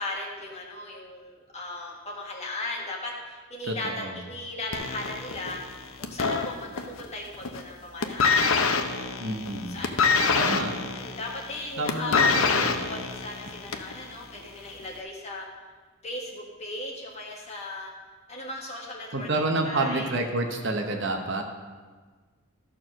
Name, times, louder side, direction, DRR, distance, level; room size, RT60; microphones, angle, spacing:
voice 1, 0.0-8.9 9.5-10.6 10.9-15.5 16.0-17.9 18.3-19.3 19.6-20.1, left 2 dB, 30° left, -2 dB, 1.6 m, -37 dB
voice 2, 3.7-4.2 9.2-9.8 10.3-10.8 11.8-12.8 19.1-21.4, right 2 dB, 55° right, 3 dB, 1.0 m, -29 dB
sound 1, 4.7-7.1 7.3-7.7 8.0-14.0 14.8-14.9, left 5 dB, 70° left, 0.7 m, -25 dB
13.5 x 4.6 x 6.4 m, 1.4 s
head